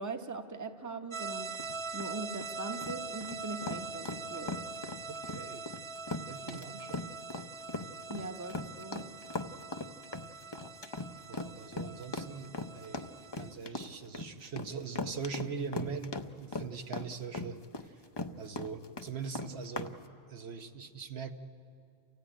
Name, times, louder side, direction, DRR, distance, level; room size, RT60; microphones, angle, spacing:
voice 1, 0.0-1.6 1.9-4.6 8.1-9.0, right 3 dB, 20° right, 6 dB, 1.0 m, -41 dB
sound 1, 1.1-13.5, right 4 dB, 35° right, 0.6 m, -43 dB
sound 2, 1.5-19.9, left 3 dB, 30° left, 0.7 m, -39 dB
voice 2, 5.1-5.7 6.2-7.1 11.3-13.1 13.3-18.0 18.4-19.9 20.3-21.3, right 5 dB, 85° right, 6 dB, 1.3 m, -42 dB
28.5 x 15.5 x 10.0 m, 2.6 s
omnidirectional pair, 1.1 m